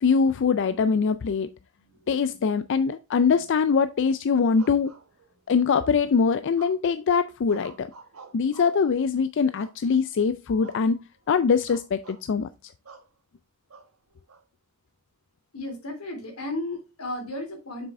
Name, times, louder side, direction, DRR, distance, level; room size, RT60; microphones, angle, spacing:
voice 1, 0.0-1.5 2.1-4.9 5.5-7.9 8.3-12.7, left 5 dB, 60° left, 0.4 m, -23 dB
voice 2, 1.8-2.4 2.7-2.8 3.3-3.4 15.5-17.9, left 1 dB, 85° left, 3.3 m, -35 dB
sound 1, 4.5-5.6 6.6-7.0 7.5-8.9 9.6-10.1 10.6-10.9 11.2-11.3 11.7-12.2 12.9-13.1 13.7-14.4, right 5 dB, 85° right, 1.2 m, -49 dB
7.4 x 6.0 x 3.4 m
head